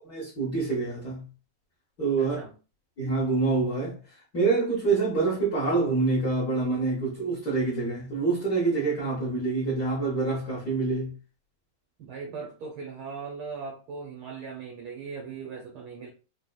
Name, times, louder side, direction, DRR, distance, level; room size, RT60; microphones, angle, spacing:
voice 1, 0.0-1.2 2.0-2.4 3.0-4.0 4.3-11.1, right 4 dB, 60° left, 1.0 m, -26 dB
voice 2, 2.2-2.5 12.0-16.1, right 5 dB, 85° right, 1.1 m, -39 dB
5.1 x 2.8 x 2.2 m
omnidirectional pair, 3.4 m